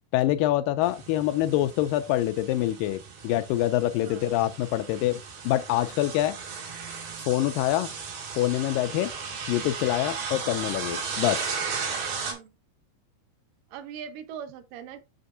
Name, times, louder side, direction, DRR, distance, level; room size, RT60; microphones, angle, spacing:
voice 1, 0.1-5.2 5.4-6.4 7.3-7.9 8.4-9.1 9.5-11.5, left 14 dB, 90° left, 1.9 m, -25 dB
sound 1, 0.8-12.3, right 5 dB, 85° right, 4.5 m, -36 dB
voice 2, 13.7-15.0, right 8 dB, 70° right, 2.4 m, -41 dB
7.9 x 6.6 x 2.6 m
omnidirectional pair, 4.5 m